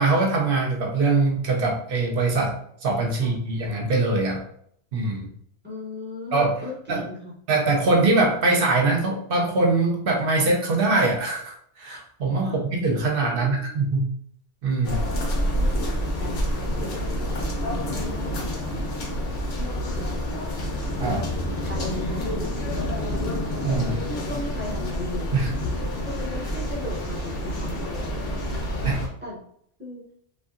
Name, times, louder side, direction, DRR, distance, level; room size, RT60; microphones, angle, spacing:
voice 1, 0.0-2.6 2.8-4.4 4.9-5.3 6.3-6.5 6.9-7.0 7.5-14.1 14.6-15.0 21.0-21.2 23.6-24.0 25.3-25.5 28.8-29.0, right 3 dB, 60° right, 0 dB, 0.8 m, -22 dB
voice 2, 5.6-7.3 12.4-12.6 13.3-13.7 14.9-19.2 19.5-20.5 21.0-21.3 21.6-23.3 24.0-25.3 26.0-29.4 29.8-30.0, left 2 dB, 10° right, -5 dB, 0.5 m, -38 dB
sound 1, 14.8-29.1, equal, 60° left, 0.8 m, -28 dB
2.6 x 2.4 x 2.5 m, 0.66 s
omnidirectional pair, 1.2 m